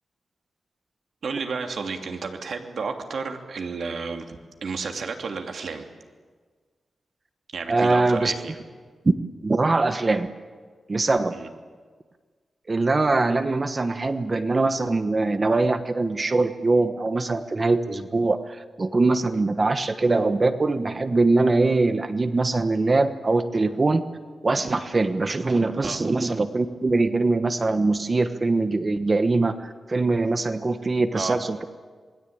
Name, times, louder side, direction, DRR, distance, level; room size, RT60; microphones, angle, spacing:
voice 1, 1.2-5.8 7.5-8.5 11.3-11.5 25.8-26.0 31.1-31.3, right 4 dB, 70° right, 4 dB, 2.8 m, -32 dB
voice 2, 7.7-8.3 9.4-10.3 10.9-11.4 12.7-24.0 24.4-31.6, right 3 dB, 30° right, 9 dB, 1.2 m, -22 dB
27.0 x 21.0 x 8.8 m, 1.5 s
wide cardioid pair, 130°, 0 cm